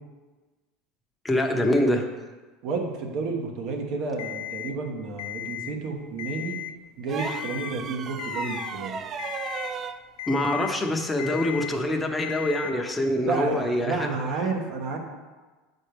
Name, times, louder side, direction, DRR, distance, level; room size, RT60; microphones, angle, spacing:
voice 1, 1.2-2.1 10.3-14.1, left 1 dB, 10° left, 2 dB, 0.8 m, -25 dB
voice 2, 2.6-6.6 7.0-9.0 13.2-15.0, right 4 dB, 60° right, 2 dB, 1.1 m, -30 dB
Alarm, 4.2-4.7 5.2-5.7 6.1-6.7 7.2-7.7 8.2-8.7 9.2-9.7 10.2-10.7 11.2-11.7 12.2-12.7, left 14 dB, 75° left, 0.4 m, -35 dB
sound 1, 7.1-10.0 11.7-11.9, right 6 dB, 40° right, 0.4 m, -35 dB
7.7 x 4.3 x 3.4 m, 1.3 s
supercardioid pair, 100°, 0 cm